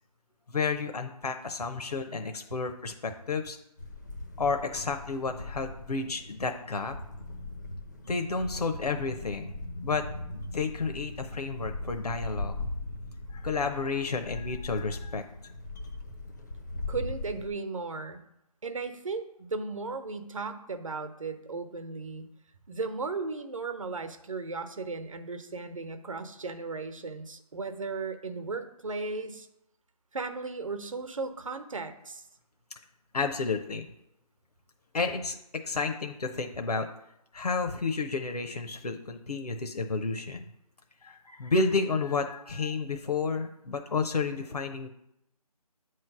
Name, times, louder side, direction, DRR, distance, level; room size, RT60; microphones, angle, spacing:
voice 1, 0.5-3.6 4.4-7.0 8.1-9.5 9.8-10.1 10.5-12.6 13.3-15.2 33.1-33.9 34.9-35.4 35.6-36.8 37.3-40.4 41.0-44.9, left 4 dB, 75° left, 5 dB, 0.8 m, -31 dB
sound 1, 3.8-17.5, left 2 dB, 30° left, 0.5 m, -39 dB
voice 2, 16.9-18.2 18.6-22.3 22.7-29.5 30.1-32.2, right 4 dB, 55° right, 7 dB, 0.9 m, -36 dB
8.8 x 3.2 x 5.9 m, 0.82 s
figure-of-eight pair, 160°, 20 cm